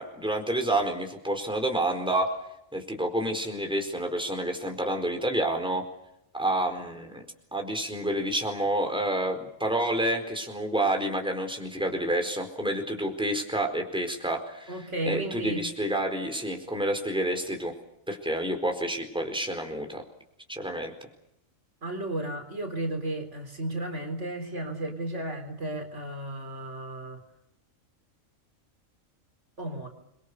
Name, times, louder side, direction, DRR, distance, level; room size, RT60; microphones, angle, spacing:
voice 1, 0.0-2.3 2.7-5.8 6.3-7.2 7.5-14.8 15.0-17.7 18.1-20.0 20.5-20.9, right 1 dB, 5° right, 4 dB, 4.5 m, -29 dB
voice 2, 14.7-15.6 21.8-27.2 29.6-29.9, right 1 dB, 60° right, 5 dB, 4.1 m, -33 dB
29.5 x 24.0 x 6.8 m, 0.79 s
omnidirectional pair, 1.4 m